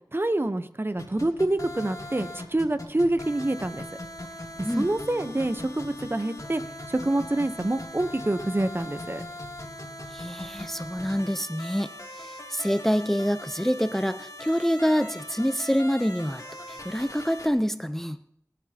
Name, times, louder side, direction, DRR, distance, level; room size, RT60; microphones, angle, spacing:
voice 1, 0.1-3.8 4.6-6.6 6.9-9.2, right 1 dB, 35° right, 10 dB, 0.9 m, -27 dB
sound 1, 1.0-17.5, left 1 dB, 60° left, 2.9 m, -40 dB
voice 2, 10.1-11.9 12.2-18.2, equal, 5° left, 11 dB, 0.7 m, -26 dB
27.5 x 11.0 x 2.9 m, 0.74 s
wide cardioid pair, 40°, 7 cm